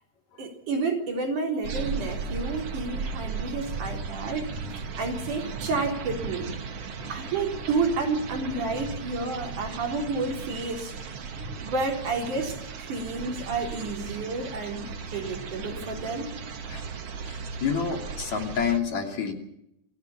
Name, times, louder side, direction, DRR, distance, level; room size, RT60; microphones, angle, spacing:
voice 1, 0.4-6.5 7.1-10.9 11.6-16.3, right 3 dB, 70° right, 2 dB, 5.2 m, -30 dB
sound 1, 1.6-18.8, right 5 dB, 50° right, 2.8 m, -36 dB
voice 2, 17.3-19.3, left 6 dB, 60° left, 3 dB, 4.2 m, -28 dB
27.5 x 16.0 x 7.1 m, 0.78 s
omnidirectional pair, 3.7 m